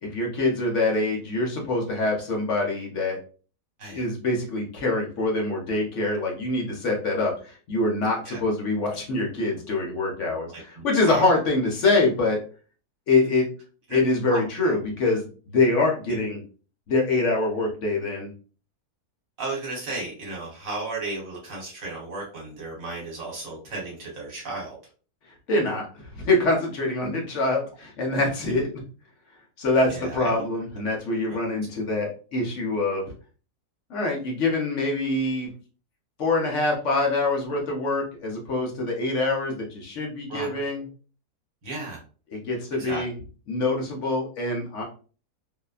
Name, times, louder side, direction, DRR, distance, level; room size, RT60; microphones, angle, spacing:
voice 1, 0.0-3.2 3.9-12.4 13.1-13.5 13.9-16.4 16.9-18.3 25.5-28.7 29.6-33.0 33.9-35.5 36.2-40.8 42.3-43.1 43.5-44.8, left 2 dB, 60° left, 0 dB, 0.9 m, -25 dB
voice 2, 10.5-11.2 13.9-14.0 14.3-14.4 19.4-24.7 29.9-30.3 31.3-31.4 40.3-40.6 41.6-42.0 42.8-43.0, right 2 dB, 55° right, -2 dB, 1.4 m, -34 dB
2.7 x 2.1 x 2.3 m, 0.38 s
omnidirectional pair, 1.7 m